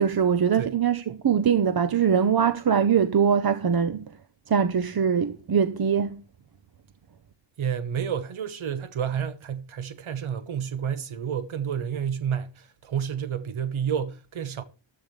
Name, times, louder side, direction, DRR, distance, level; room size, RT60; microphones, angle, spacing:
voice 1, 0.0-4.0 4.5-6.2, right 7 dB, 50° right, 0.8 m, -22 dB
voice 2, 7.6-14.6, right 8 dB, 90° right, 1.1 m, -30 dB
14.0 x 12.5 x 3.2 m
wide cardioid pair, 100°, 47 cm